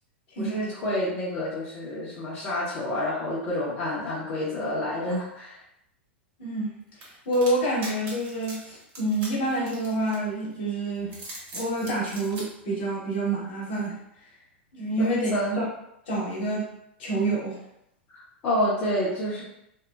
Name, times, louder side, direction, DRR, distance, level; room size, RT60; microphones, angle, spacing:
voice 1, 0.4-5.6 15.0-15.6 18.1-19.4, left 1 dB, 40° left, -9 dB, 0.8 m, -29 dB
voice 2, 6.4-6.8 7.2-14.0 14.7-15.3 15.6-15.7 16.1-16.7 17.0-17.6, right 1 dB, 60° left, -5 dB, 1.2 m, -27 dB
sound 1, 7.0-10.5 11.0-12.4, right 2 dB, 35° right, 1.0 m, -41 dB
2.8 x 2.0 x 2.3 m, 0.80 s
hypercardioid pair, 100°, 6 cm